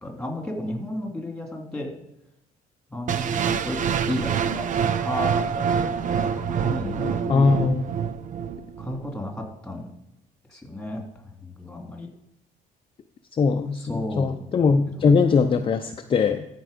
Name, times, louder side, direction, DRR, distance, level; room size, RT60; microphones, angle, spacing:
voice 1, 0.0-1.9 2.9-3.8 4.1-7.6 8.8-9.9 10.5-11.0 11.4-12.1 13.7-14.3 15.0-15.1, left 1 dB, 5° left, 1 dB, 2.4 m, -33 dB
sound 1, 3.1-9.1, right 7 dB, 50° right, 0.6 m, -26 dB
voice 2, 7.3-7.8 13.4-16.5, left 5 dB, 30° left, 5 dB, 0.6 m, -21 dB
13.5 x 4.7 x 5.1 m, 0.87 s
cardioid pair, 110°, 17 cm